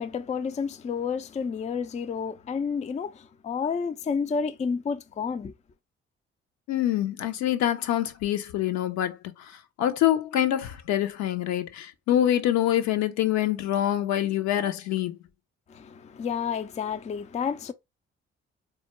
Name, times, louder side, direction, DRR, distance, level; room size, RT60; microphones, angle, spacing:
voice 1, 0.0-5.5 15.7-17.7, left 6 dB, 20° left, 0.5 m, -30 dB
voice 2, 6.7-15.2, left 12 dB, 60° left, 0.7 m, -25 dB
4.2 x 2.3 x 3.0 m
figure-of-eight pair, 40°, 31 cm